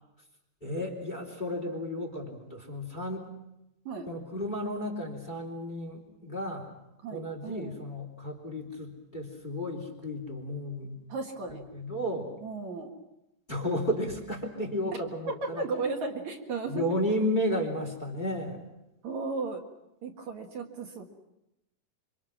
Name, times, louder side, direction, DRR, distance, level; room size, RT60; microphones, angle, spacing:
voice 1, 0.6-3.3 4.1-6.7 7.1-11.0 11.5-12.3 13.5-15.6 16.7-18.6, equal, 15° left, 1 dB, 3.3 m, -33 dB
voice 2, 7.0-7.7 11.1-11.6 12.4-12.9 15.3-17.0 19.0-19.6 20.0-21.0, right 3 dB, 65° right, 2 dB, 3.0 m, -35 dB
27.0 x 25.0 x 6.2 m, 0.89 s
omnidirectional pair, 3.7 m